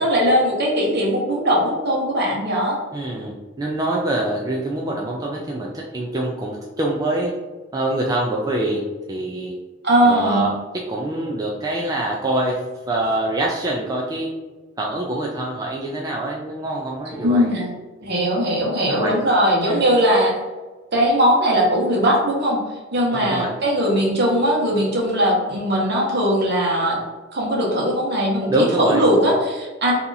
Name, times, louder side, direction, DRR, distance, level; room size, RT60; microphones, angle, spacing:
voice 1, 0.0-2.8 9.8-10.4 17.1-17.7 18.0-20.3 20.9-22.6 22.9-27.0 27.3-29.9, equal, 55° right, -2 dB, 1.0 m, -19 dB
voice 2, 2.9-7.3 7.7-8.8 9.1-9.5 10.0-10.6 10.9-12.6 12.9-14.3 14.8-17.5 18.9-19.1 19.6-19.9 23.1-23.5 28.5-29.3, right 1 dB, 20° right, -3 dB, 0.3 m, -25 dB
2.8 x 2.4 x 3.9 m, 1.2 s
head